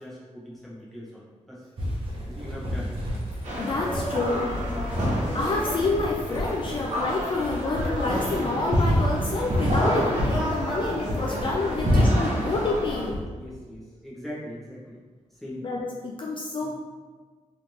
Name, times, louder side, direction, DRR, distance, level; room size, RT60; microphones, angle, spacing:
voice 1, 0.0-1.6 2.3-2.9 3.9-5.0 7.0-7.2 8.6-9.1 11.7-12.2 13.3-15.0 15.3-15.6 16.6-16.7, equal, ahead, -7 dB, 1.0 m, -41 dB
sound 1, 1.8-13.2, equal, 50° right, 0.9 m, -28 dB
sound 2, 2.9-8.0, left 2 dB, 20° right, 0.7 m, -42 dB
sound 3, 3.4-13.1, equal, 70° right, 1.1 m, -31 dB
voice 2, 3.6-4.5 5.3-13.2 15.6-16.7, left 3 dB, 45° left, -1 dB, 0.3 m, -28 dB
3.1 x 3.1 x 2.7 m, 1.5 s
cardioid pair, 90°, 12 cm